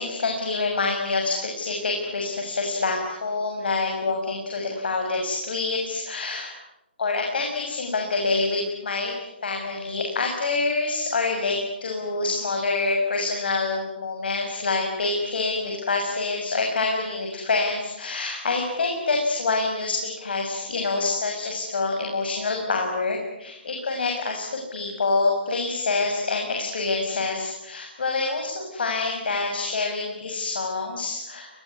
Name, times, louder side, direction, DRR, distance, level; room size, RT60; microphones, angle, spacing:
voice 1, 0.0-6.5 7.0-9.2 9.4-31.5, left 3 dB, 65° left, 2 dB, 6.6 m, -26 dB
27.5 x 21.5 x 9.8 m, 0.91 s
hypercardioid pair, 180°, 6 cm